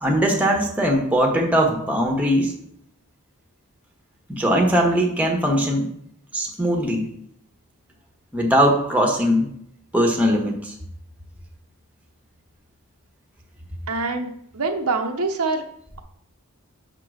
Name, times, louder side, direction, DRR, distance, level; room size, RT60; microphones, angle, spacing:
voice 1, 0.0-2.5 4.3-5.8 6.3-7.1 8.3-9.5 9.9-10.7, equal, 5° right, 1 dB, 1.2 m, -20 dB
voice 2, 13.9-15.6, right 3 dB, 90° right, 4 dB, 1.0 m, -25 dB
7.3 x 3.8 x 6.2 m, 0.70 s
head